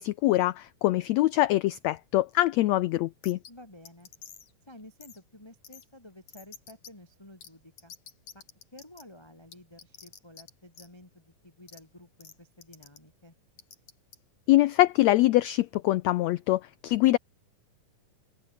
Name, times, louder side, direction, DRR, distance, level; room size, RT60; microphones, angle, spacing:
voice 1, 0.0-3.4 14.5-17.2, left 16 dB, 85° left, 1.5 m, -24 dB
sound 1, 3.2-3.5 3.9-4.5 5.0-5.2 5.6-5.8 6.3-6.9 7.4-7.5 7.8-9.0 9.5-10.5 10.7-10.9 11.7-11.8 12.2-12.3 12.6-13.0 13.6-14.2, left 7 dB, 55° left, 3.8 m, -48 dB
voice 2, 3.5-4.1 4.6-7.9 8.3-8.4 8.7-13.4, left 1 dB, 10° left, 3.5 m, -52 dB
omnidirectional pair, 3.8 m